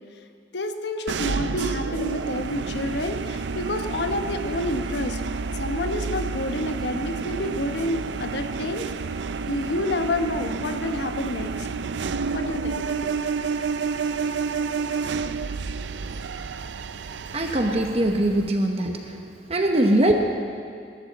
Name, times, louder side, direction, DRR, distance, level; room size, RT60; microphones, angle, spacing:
voice 1, 0.5-5.2 5.6-8.9 9.5-11.7 12.3-13.2, left 1 dB, 70° left, 6 dB, 1.0 m, -29 dB
sound 1, 1.1-18.5, right 4 dB, 80° right, 0.5 m, -30 dB
voice 2, 17.3-18.9 19.5-20.1, right 1 dB, 35° right, 3 dB, 1.0 m, -21 dB
21.0 x 12.0 x 4.1 m, 2.3 s
head